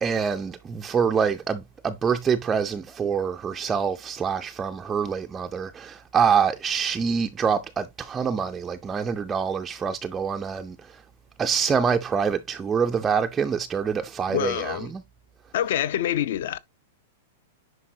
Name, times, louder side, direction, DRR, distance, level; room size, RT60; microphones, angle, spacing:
voice 1, 0.0-11.0 11.4-15.0, right 6 dB, 10° right, 0.4 m, -25 dB
voice 2, 14.3-14.9 15.5-16.6, left 11 dB, 60° left, 0.6 m, -26 dB
9.9 x 4.6 x 2.7 m
supercardioid pair, 170°, 0 cm